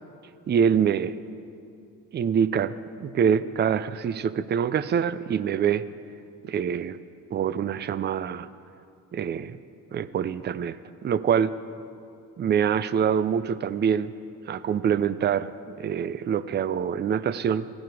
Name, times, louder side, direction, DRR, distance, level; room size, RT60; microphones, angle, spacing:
voice 1, 0.5-1.1 2.1-5.9 6.4-7.0 7.3-8.5 9.1-9.6 9.9-10.8 11.0-11.5 12.4-14.1 14.5-17.7, right 8 dB, 30° right, 16 dB, 0.4 m, -25 dB
15.5 x 10.5 x 4.8 m, 2.5 s
cardioid pair, 90°, 35 cm